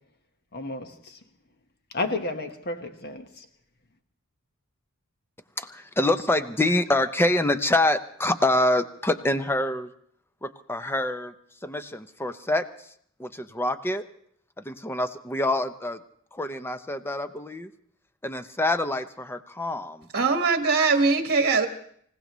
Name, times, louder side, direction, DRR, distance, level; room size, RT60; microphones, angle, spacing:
voice 1, 0.5-1.2 1.9-3.4, left 2 dB, 50° left, 1.3 m, -32 dB
voice 2, 5.6-9.9 10.4-11.3 11.6-12.6 13.2-14.0 14.6-16.0 16.3-17.7 18.2-20.1, left 1 dB, 10° left, 0.6 m, -26 dB
voice 3, 20.1-21.7, right 4 dB, 45° right, 1.6 m, -21 dB
26.5 x 16.5 x 3.1 m
head